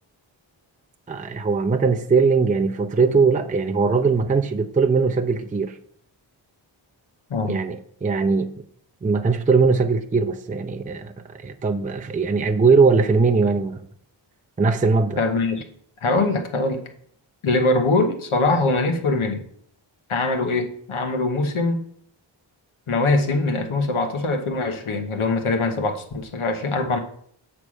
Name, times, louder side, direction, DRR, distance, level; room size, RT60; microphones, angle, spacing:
voice 1, 1.1-5.8 7.4-8.5 9.0-13.9 14.6-15.2, right 4 dB, 15° right, 0.5 m, -20 dB
voice 2, 15.2-15.6 16.0-16.8 17.4-19.5 20.1-21.8 22.9-27.0, left 2 dB, 80° left, 1.1 m, -22 dB
7.1 x 3.3 x 6.2 m
wide cardioid pair, 60°, 48 cm